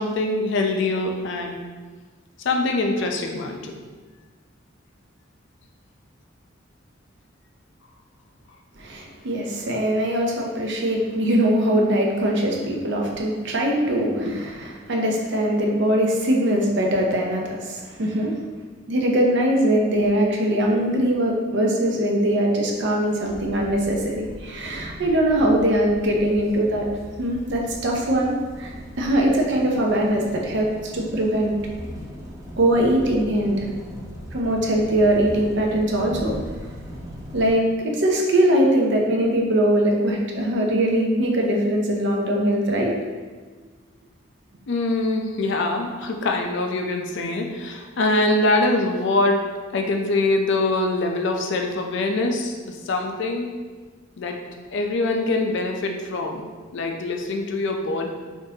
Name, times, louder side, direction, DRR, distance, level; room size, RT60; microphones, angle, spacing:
voice 1, 0.0-1.6 2.4-3.8 44.7-49.4 49.7-53.5 54.2-54.4 54.7-56.5 56.7-58.1, left 2 dB, 65° left, 3 dB, 0.4 m, -23 dB
voice 2, 8.8-18.4 18.9-26.8 27.2-28.3 28.6-30.7 30.9-31.5 32.6-33.7 34.3-36.3 37.3-42.9, right 1 dB, 65° right, 0 dB, 0.6 m, -21 dB
sound 1, 23.2-37.5, equal, 15° right, 0.5 m, -39 dB
3.7 x 2.6 x 2.7 m, 1.4 s
head